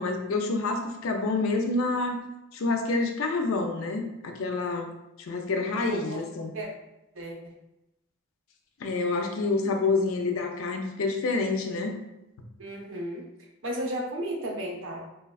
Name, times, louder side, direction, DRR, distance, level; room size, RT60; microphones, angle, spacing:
voice 1, 0.0-2.2 2.5-4.9 5.2-6.5 8.8-11.9, left 3 dB, 75° left, 4 dB, 0.4 m, -28 dB
voice 2, 5.8-6.2 6.5-6.7 7.1-7.5 12.6-13.3 13.6-15.0, right 1 dB, 65° right, 0 dB, 0.6 m, -34 dB
3.3 x 2.2 x 2.3 m, 0.91 s
head